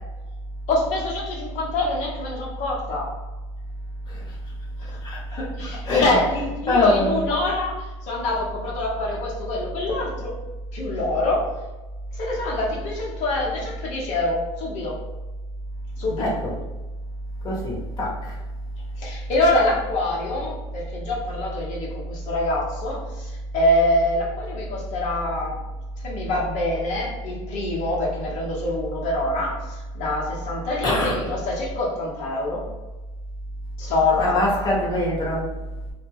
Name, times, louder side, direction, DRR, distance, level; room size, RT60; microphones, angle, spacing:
voice 1, 0.7-3.1 4.8-5.0 5.3-10.3 10.7-11.5 12.1-15.0 16.0-16.2 19.0-25.6 26.0-32.7 33.8-34.7, left 2 dB, 55° left, -3 dB, 1.0 m, -25 dB
voice 2, 5.0-6.2 6.7-7.2 16.2-16.5 17.4-18.4 30.8-31.3 34.2-35.5, left 1 dB, 30° left, -5 dB, 1.1 m, -24 dB
2.2 x 2.2 x 3.4 m, 1.1 s
supercardioid pair, 120°, 15 cm